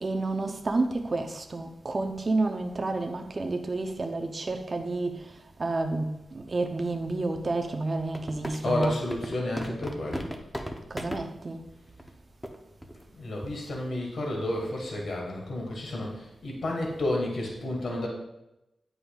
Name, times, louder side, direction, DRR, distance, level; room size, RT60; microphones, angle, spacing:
voice 1, 0.0-5.3 5.6-8.9 10.9-11.6, right 2 dB, 40° right, 4 dB, 0.6 m, -30 dB
sound 1, 8.0-11.2 12.0-12.1 12.4-12.6 12.8-13.0 13.4-13.7, equal, 5° left, 0.7 m, -35 dB
voice 2, 8.6-10.3 13.1-18.1, left 1 dB, 70° left, 0 dB, 1.5 m, -31 dB
8.5 x 5.5 x 2.4 m, 0.91 s
cardioid pair, 70°, 0 cm